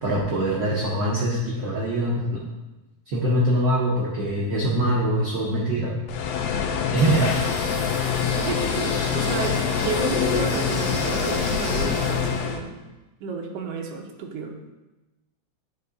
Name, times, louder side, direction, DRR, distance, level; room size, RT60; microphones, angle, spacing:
voice 1, 0.0-2.4 3.1-5.9 6.9-7.3, right 1 dB, 90° right, -5 dB, 1.0 m, -23 dB
sound 1, 6.1-12.6, left 7 dB, 90° left, 2.1 m, -25 dB
sound 2, 6.9-12.4, left 1 dB, 30° left, 1.2 m, -34 dB
voice 2, 8.4-12.7 13.2-14.5, right 4 dB, 70° right, 1 dB, 1.7 m, -31 dB
10.0 x 4.8 x 2.6 m, 1.1 s
omnidirectional pair, 3.4 m